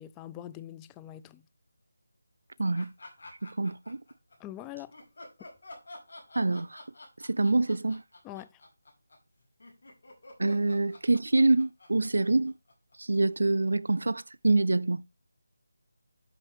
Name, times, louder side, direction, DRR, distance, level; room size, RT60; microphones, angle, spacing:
voice 1, 0.0-1.4 4.4-4.9 8.2-8.6, left 13 dB, 10° left, 0.4 m, -43 dB
voice 2, 2.6-2.9 3.4-4.0 6.4-6.8 7.3-8.0 10.4-12.5 13.0-15.0, right 2 dB, 75° right, 0.5 m, -26 dB
sound 1, 2.7-4.4 4.9-13.2, left 2 dB, 65° left, 5.1 m, -49 dB
9.8 x 5.8 x 3.3 m
figure-of-eight pair, 165°, 0 cm